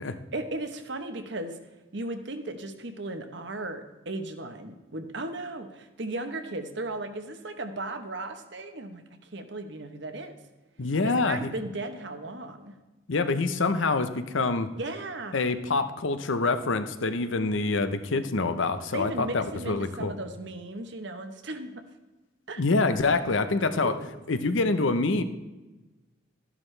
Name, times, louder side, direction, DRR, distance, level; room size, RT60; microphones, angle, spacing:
voice 1, 0.3-1.6 1.9-9.0 9.3-10.3 11.0-12.7 14.8-15.4 18.9-21.8 22.5-22.6 23.1-23.4 23.7-24.1, right 2 dB, 60° right, 7 dB, 1.1 m, -36 dB
voice 2, 10.8-11.5 13.1-14.7 15.3-20.1 22.6-24.0 24.3-25.2, left 3 dB, 70° left, 10 dB, 0.8 m, -26 dB
12.5 x 11.0 x 3.3 m, 1.1 s
head